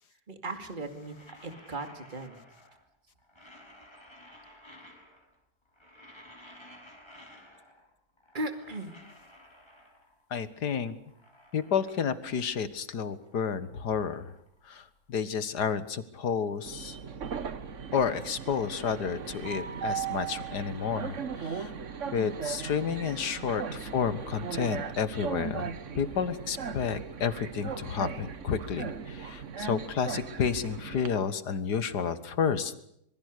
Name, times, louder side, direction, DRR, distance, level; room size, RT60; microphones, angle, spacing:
voice 1, 0.3-1.1 1.4-2.4 8.3-9.0, right 2 dB, 30° right, 8 dB, 2.6 m, -37 dB
sound 1, 0.7-2.9 3.2-5.4 5.6-7.9 8.2-10.2 10.7-12.7 13.0-15.2, left 1 dB, 15° left, 5.9 m, -55 dB
voice 2, 10.3-11.0 11.5-14.3 14.7-17.0 17.9-21.7 22.1-32.7, left 6 dB, 75° left, 13 dB, 2.0 m, -31 dB
Train, 16.7-31.1, right 6 dB, 50° right, 1.4 m, -38 dB
26.0 x 23.0 x 6.7 m, 0.73 s
omnidirectional pair, 1.8 m